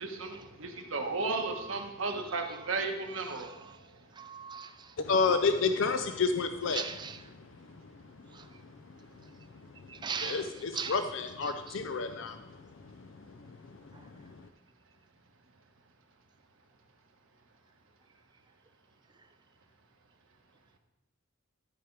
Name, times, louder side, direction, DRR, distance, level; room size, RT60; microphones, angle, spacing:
voice 1, 0.0-3.7, right 3 dB, 75° right, 3 dB, 1.2 m, -34 dB
voice 2, 1.3-1.8 3.4-3.7 4.2-4.7 6.7-7.2 9.9-10.4 10.7-10.9, right 6 dB, 20° right, 10 dB, 0.5 m, -38 dB
voice 3, 5.0-7.0 7.3-7.5 8.6-8.7 9.8-9.9 10.2-13.6 13.8-14.4, left 4 dB, 65° left, 8 dB, 0.5 m, -31 dB
13.0 x 5.1 x 4.6 m, 0.95 s
head